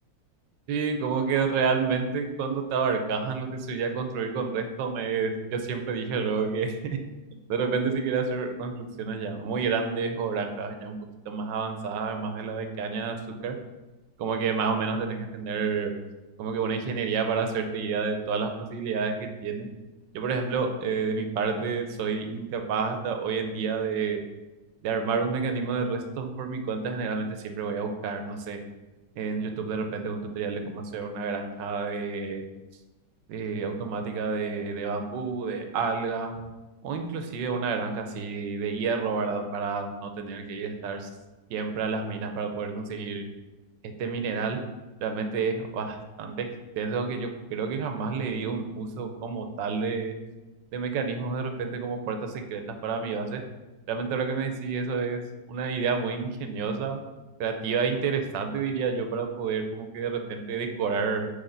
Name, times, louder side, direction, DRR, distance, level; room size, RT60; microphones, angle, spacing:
voice 1, 0.7-7.0 7.5-11.0 11.3-13.2 13.4-13.6 14.2-15.9 16.4-19.7 20.1-24.2 24.8-28.6 29.2-32.4 33.3-36.3 36.8-41.1 41.5-43.3 44.0-44.6 45.0-46.5 46.7-50.1 50.7-53.4 53.9-55.2 55.5-57.0 57.4-61.3, right 5 dB, 80° right, 5 dB, 1.4 m, -29 dB
9.2 x 3.6 x 3.9 m, 1.1 s
omnidirectional pair, 2.0 m